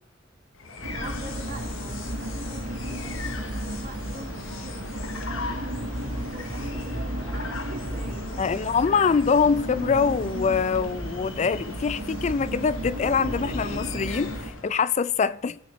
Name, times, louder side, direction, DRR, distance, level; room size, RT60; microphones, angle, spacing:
sound 1, 0.6-14.8, left 3 dB, 85° left, 0.9 m, -38 dB
sound 2, 0.8-14.5, right 1 dB, 75° right, 1.3 m, -34 dB
voice 1, 0.9-9.0, right 2 dB, 45° right, 1.5 m, -46 dB
voice 2, 8.4-15.6, left 5 dB, 35° left, 0.3 m, -24 dB
17.0 x 6.0 x 3.1 m
head